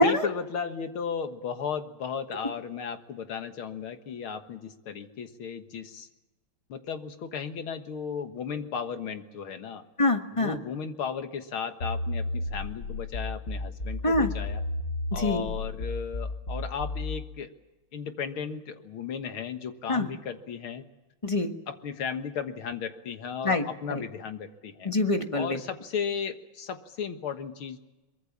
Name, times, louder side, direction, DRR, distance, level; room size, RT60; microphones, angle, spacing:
voice 1, 0.0-6.1 6.7-9.8 10.3-14.6 15.1-17.5 17.9-20.9 21.7-24.9 25.3-27.8, left 6 dB, 80° left, 8 dB, 2.3 m, -35 dB
voice 2, 10.0-10.6 14.0-14.3 15.1-15.4 19.9-20.1 21.2-21.5 23.4-24.0 24.8-25.6, left 2 dB, 15° left, 6 dB, 1.3 m, -25 dB
sound 1, 11.8-17.3, left 2 dB, 50° left, 3.5 m, -33 dB
23.5 x 22.0 x 7.3 m, 1.1 s
omnidirectional pair, 2.3 m